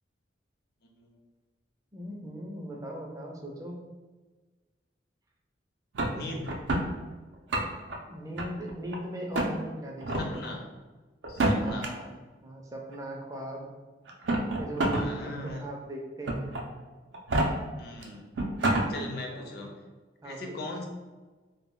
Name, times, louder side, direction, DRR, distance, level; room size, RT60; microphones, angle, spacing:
voice 1, 1.9-3.8 8.1-10.6 11.6-13.7 14.6-16.6 19.3-19.6 20.2-20.6, right 1 dB, 20° right, 0 dB, 0.4 m, -39 dB
sound 1, 5.9-6.9 7.3-8.0 8.4-9.0 9.3-9.5 10.0-10.3 11.2-11.9 12.9-13.0 14.1-15.1 15.5-15.6 16.3-16.6 17.1-17.5 18.0-18.1 18.3-18.9, right 1 dB, 80° right, 0.5 m, -27 dB
voice 2, 6.1-6.5 10.2-10.7 11.3-11.9 14.9-15.6 17.8-18.3 18.9-19.7 20.2-20.8, left 2 dB, 55° left, 2 dB, 0.5 m, -39 dB
2.2 x 2.1 x 3.6 m, 1.3 s
head